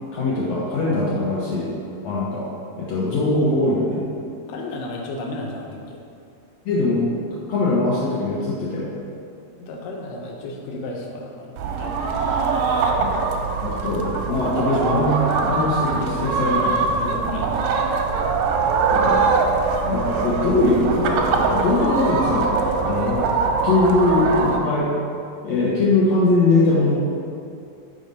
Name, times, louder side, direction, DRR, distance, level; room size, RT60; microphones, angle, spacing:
voice 1, 0.1-1.7 2.0-2.5 2.8-4.0 6.6-7.1 7.5-8.9 13.0-13.1 13.6-16.9 18.9-19.3 19.8-22.5 22.8-23.2 23.6-24.9 25.4-26.9, left 2 dB, 65° left, -6 dB, 1.7 m, -21 dB
voice 2, 4.5-6.0 9.6-12.3 14.3-15.1 15.3-15.6 15.9-16.4 16.9-18.1, left 2 dB, 85° left, 0 dB, 2.4 m, -34 dB
sound 1, 11.6-24.6, right 4 dB, 85° right, 2.2 m, -22 dB
5.2 x 4.9 x 5.3 m, 2.6 s
omnidirectional pair, 3.8 m